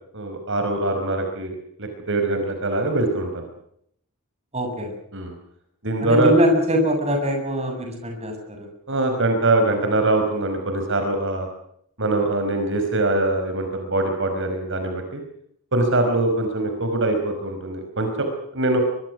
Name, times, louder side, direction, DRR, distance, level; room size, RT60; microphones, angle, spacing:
voice 1, 0.1-3.5 5.1-5.4 5.8-6.3 8.9-11.5 12.0-15.2 15.7-18.3 18.5-18.8, right 2 dB, 55° right, 5 dB, 5.0 m, -23 dB
voice 2, 4.5-4.9 6.0-8.7, equal, 30° right, 4 dB, 7.4 m, -22 dB
24.0 x 23.5 x 6.2 m, 0.70 s
head